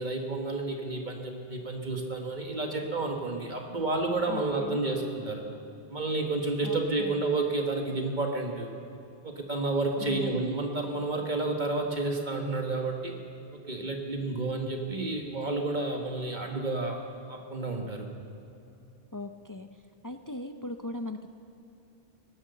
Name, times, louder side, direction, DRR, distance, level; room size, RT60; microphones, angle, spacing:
voice 1, 0.0-5.5 5.9-8.7 9.2-13.1 13.5-17.0 17.3-18.1, right 2 dB, 50° right, 2 dB, 1.7 m, -30 dB
voice 2, 4.3-4.8 6.6-7.2 10.0-10.4 19.1-19.7 20.0-21.3, left 2 dB, 25° left, 7 dB, 0.4 m, -39 dB
19.0 x 11.0 x 6.8 m, 2.8 s
omnidirectional pair, 1.0 m